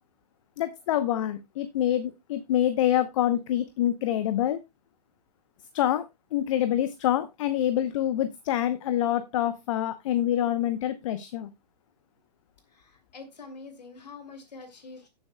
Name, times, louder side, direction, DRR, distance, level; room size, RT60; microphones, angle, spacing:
voice 1, 0.6-4.6 5.7-6.0 6.3-11.5, left 11 dB, 50° left, 12 dB, 0.8 m, -26 dB
voice 2, 12.7-15.1, left 4 dB, 75° left, 6 dB, 2.6 m, -45 dB
16.0 x 7.2 x 2.2 m, 0.21 s
hypercardioid pair, 120°, 21 cm